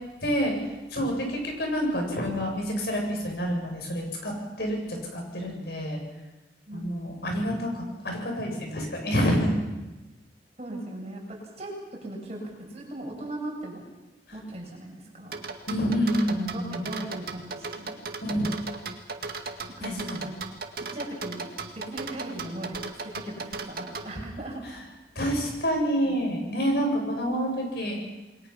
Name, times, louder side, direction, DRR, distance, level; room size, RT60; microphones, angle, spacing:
voice 1, 0.2-0.5 0.9-6.0 6.7-9.5 15.7-16.8 18.2-18.5 19.8-20.2 25.2-28.0, equal, 65° left, 1 dB, 7.7 m, -28 dB
voice 2, 10.6-13.8 14.3-15.4 16.1-16.2 16.5-18.0 19.7-20.4 20.8-21.5 21.8-24.6 26.0-26.2, right 1 dB, 40° right, 0 dB, 7.1 m, -38 dB
sound 1, 15.3-24.1, right 4 dB, 55° right, 2.1 m, -36 dB
29.0 x 21.5 x 5.8 m, 1.1 s
head